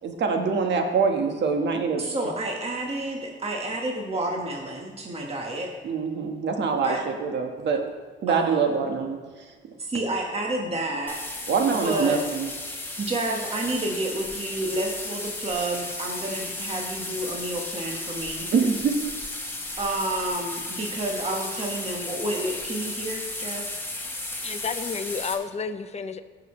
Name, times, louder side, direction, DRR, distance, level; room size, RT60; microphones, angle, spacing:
voice 1, 0.0-2.0 5.8-7.8 8.2-9.2 11.5-12.5 18.5-18.9, right 5 dB, 60° right, 1.5 m, -24 dB
voice 2, 2.0-5.7 6.8-7.0 8.3-8.8 9.8-11.2 11.7-12.2 13.0-18.5 19.8-23.8, right 1 dB, 30° right, 1.5 m, -30 dB
sound 1, 11.1-25.3, left 2 dB, 10° left, 1.5 m, -34 dB
voice 3, 24.4-26.2, left 5 dB, 35° left, 0.7 m, -31 dB
16.0 x 6.7 x 3.2 m
cardioid pair, 90°, 20 cm